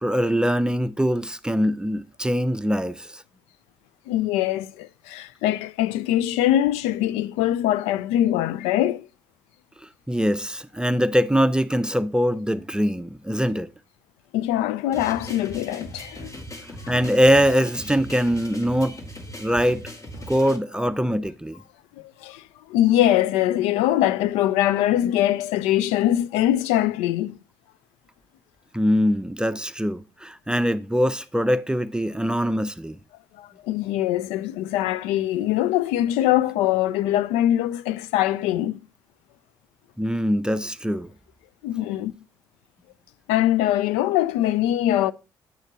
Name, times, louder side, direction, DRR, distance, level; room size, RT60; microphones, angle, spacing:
voice 1, 0.0-3.2 10.1-13.7 16.9-19.0 19.4-19.9 20.3-21.6 28.7-33.0 40.0-41.1, equal, 5° right, 0.6 m, -22 dB
voice 2, 4.1-9.1 14.3-16.3 16.8-16.9 22.0-27.4 33.4-38.8 41.6-42.1 43.3-45.1, left 13 dB, 75° left, 0.4 m, -23 dB
sound 1, 14.9-20.6, equal, 30° left, 1.9 m, -39 dB
9.2 x 6.5 x 2.9 m
hypercardioid pair, 40°, 11 cm